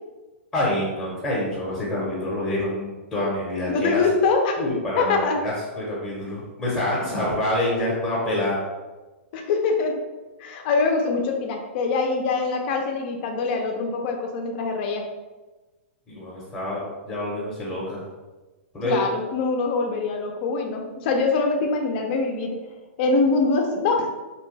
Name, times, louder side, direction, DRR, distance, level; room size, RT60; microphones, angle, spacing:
voice 1, 0.5-4.0 4.6-8.6 16.1-18.0 18.7-19.0, left 1 dB, 10° left, -6 dB, 0.8 m, -27 dB
voice 2, 3.7-4.6 5.0-5.4 9.3-10.0 10.4-15.1 18.8-22.6 23.0-24.1, left 4 dB, 45° left, 3 dB, 0.5 m, -23 dB
2.8 x 2.1 x 3.2 m, 1.2 s
hypercardioid pair, 150°, 7 cm